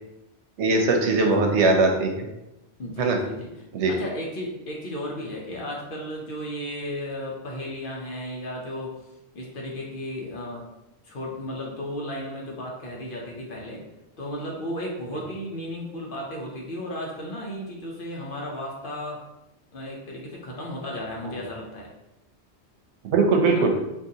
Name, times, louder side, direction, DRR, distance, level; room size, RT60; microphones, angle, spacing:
voice 1, 0.6-2.2 3.0-3.2 3.7-3.9 23.1-23.7, right 3 dB, 85° right, 3 dB, 0.9 m, -20 dB
voice 2, 2.8-9.0 9.3-10.7 11.0-13.8 14.2-19.2 19.7-21.9 23.5-23.7, left 1 dB, 55° left, -2 dB, 0.8 m, -34 dB
3.7 x 2.5 x 2.7 m, 0.92 s
omnidirectional pair, 1.1 m